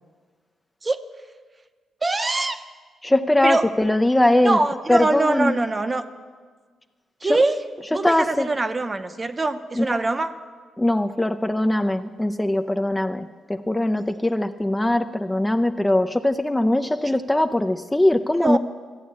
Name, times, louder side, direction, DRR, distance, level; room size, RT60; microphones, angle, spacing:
voice 1, 2.0-2.6 3.4-3.7 4.4-6.0 7.2-7.6 7.9-10.3 18.4-18.6, right 2 dB, 25° right, 9 dB, 0.7 m, -23 dB
voice 2, 3.0-4.6 4.9-5.6 7.2-7.4 7.9-8.5 9.8-10.1 10.8-18.6, left 1 dB, 10° left, 8 dB, 0.4 m, -21 dB
13.5 x 8.4 x 8.4 m, 1.5 s
cardioid pair, 95°, 0 cm